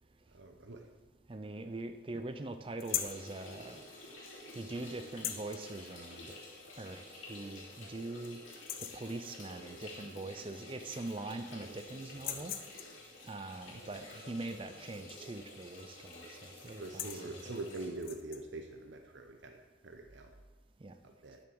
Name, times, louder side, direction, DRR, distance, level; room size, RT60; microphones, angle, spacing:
voice 1, 0.3-0.9 12.3-12.4 13.6-13.8 16.8-19.6 19.8-20.3 21.2-21.4, right 2 dB, 75° right, 4 dB, 0.9 m, -44 dB
voice 2, 1.3-3.8 4.5-6.3 6.8-8.4 8.8-12.5 13.2-17.6 20.8-20.9, right 2 dB, 30° right, 9 dB, 0.5 m, -43 dB
sound 1, 2.8-3.2 5.1-5.6 7.0-7.1 7.5-7.6 8.0-8.3 8.5-9.1 10.4-10.5 10.8-11.5 12.1-13.0 15.4-15.7 16.0-16.2 16.7-17.3 17.9-18.4, left 10 dB, 50° left, 0.7 m, -40 dB
sound 2, 2.9-17.9, left 2 dB, 85° left, 3.1 m, -51 dB
11.0 x 7.1 x 6.1 m, 1.2 s
head